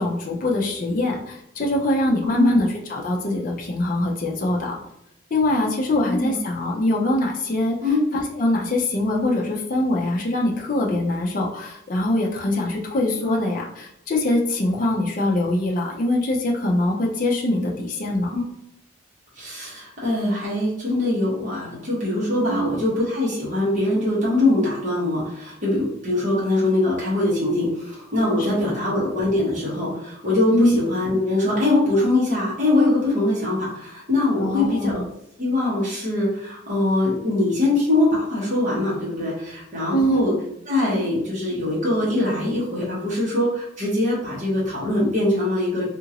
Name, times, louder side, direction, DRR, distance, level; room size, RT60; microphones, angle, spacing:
voice 1, 0.0-4.8 5.3-7.8 8.1-18.3 22.4-22.8 28.5-28.6 30.5-30.8 34.4-35.1 39.9-40.3, left 1 dB, 40° left, -1 dB, 0.5 m, -23 dB
voice 2, 2.2-2.6 6.0-6.4 7.8-8.0 13.2-13.4 18.3-18.4 19.4-35.0 35.4-40.3 40.7-45.9, left 2 dB, 40° right, -6 dB, 1.2 m, -22 dB
2.8 x 2.5 x 2.9 m, 0.76 s
head